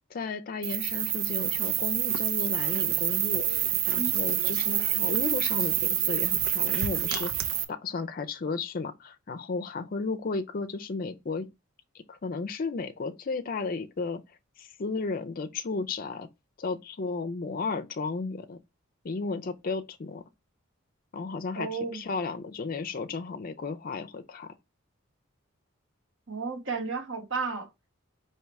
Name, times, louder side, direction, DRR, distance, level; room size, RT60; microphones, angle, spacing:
voice 1, 0.1-11.5 11.9-14.2 14.6-16.3 16.6-18.6 19.0-20.2 21.1-24.5, left 4 dB, 45° left, 0.4 m, -34 dB
sound 1, 0.6-7.6, right 10 dB, 85° right, 0.7 m, -27 dB
voice 2, 21.6-22.0 26.3-27.7, right 4 dB, 60° right, 1.2 m, -32 dB
4.7 x 2.9 x 3.1 m
head